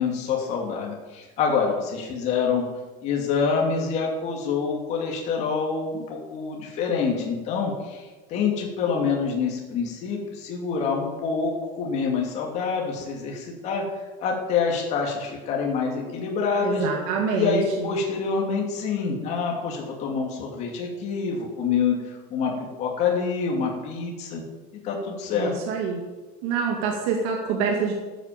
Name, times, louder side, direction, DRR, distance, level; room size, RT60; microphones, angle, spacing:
voice 1, 0.0-2.6 3.0-13.8 14.2-16.9 17.3-22.5 22.8-24.4 24.7-25.5, left 5 dB, 35° left, -1 dB, 2.6 m, -26 dB
voice 2, 16.6-17.9 25.3-26.0 26.4-27.9, right 5 dB, 65° right, 1 dB, 2.3 m, -26 dB
12.0 x 9.0 x 7.6 m, 1.2 s
cardioid pair, 180°, 19 cm